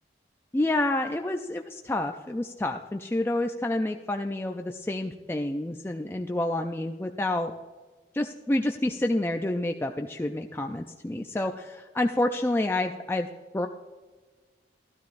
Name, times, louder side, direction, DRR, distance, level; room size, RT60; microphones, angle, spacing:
voice 1, 0.5-7.5 8.1-13.3 13.5-13.7, left 1 dB, 15° left, 4 dB, 0.3 m, -28 dB
12.5 x 12.5 x 2.5 m, 1.3 s
head